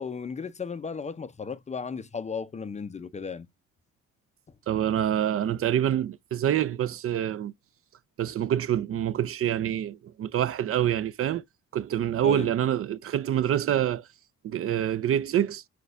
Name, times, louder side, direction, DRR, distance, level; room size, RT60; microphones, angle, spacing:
voice 1, 0.0-3.5 12.2-12.5, left 5 dB, 25° left, 0.4 m, -35 dB
voice 2, 4.7-7.5 8.2-11.4 11.7-14.1 14.4-15.6, right 10 dB, 50° right, 0.4 m, -26 dB
6.1 x 2.3 x 2.5 m
cardioid pair, 90°, 30 cm